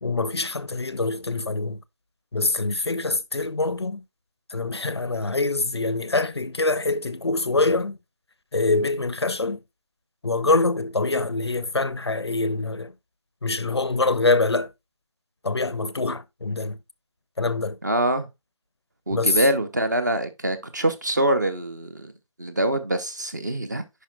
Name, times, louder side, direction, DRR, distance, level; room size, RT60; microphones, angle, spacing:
voice 1, 0.0-1.8 2.3-4.0 4.5-8.0 8.5-9.6 10.2-12.9 13.4-14.7 15.4-16.8 17.4-17.8 19.1-19.4, left 3 dB, 50° left, 0.5 m, -24 dB
voice 2, 17.8-18.3 19.1-22.1 22.4-23.8, right 1 dB, 35° right, 0.7 m, -24 dB
9.9 x 5.3 x 2.2 m
figure-of-eight pair, 160°, 17 cm